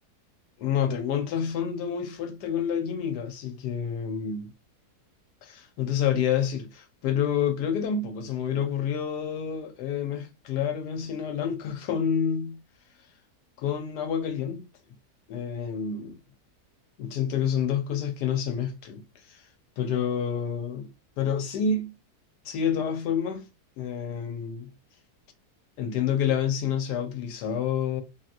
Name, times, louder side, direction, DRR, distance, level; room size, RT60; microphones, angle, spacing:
voice 1, 0.6-4.5 5.4-12.6 13.6-14.7 15.3-16.2 17.0-19.0 19.3-19.4 19.8-20.9 21.2-21.9 22.4-23.4 23.8-24.7 25.8-28.0, left 7 dB, 85° left, 1.3 m, -28 dB
2.8 x 2.8 x 2.4 m
omnidirectional pair, 1.7 m